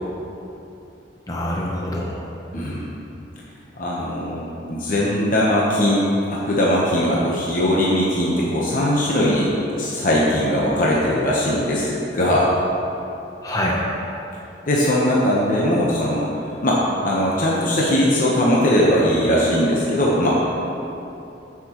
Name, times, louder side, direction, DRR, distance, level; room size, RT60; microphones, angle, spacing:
voice 1, 1.3-2.3 13.4-13.8, left 1 dB, 20° left, -3 dB, 0.7 m, -25 dB
voice 2, 2.5-2.9 3.8-6.0 6.3-9.5 9.8-12.5 14.7-16.3 16.6-20.5, left 1 dB, 50° left, -5 dB, 1.0 m, -20 dB
13.0 x 6.0 x 3.0 m, 2.9 s
head